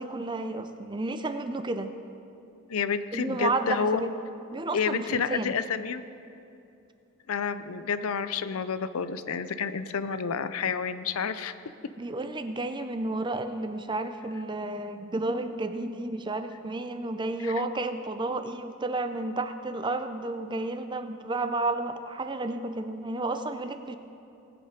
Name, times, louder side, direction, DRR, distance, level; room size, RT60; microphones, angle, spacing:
voice 1, 0.0-1.9 3.1-4.1 4.5-5.5 12.0-24.0, right 2 dB, 20° right, 9 dB, 0.5 m, -31 dB
voice 2, 2.7-4.0 4.7-6.0 7.3-11.5 17.4-17.5, left 6 dB, 80° left, 12 dB, 0.5 m, -29 dB
18.5 x 8.0 x 5.1 m, 2.7 s
head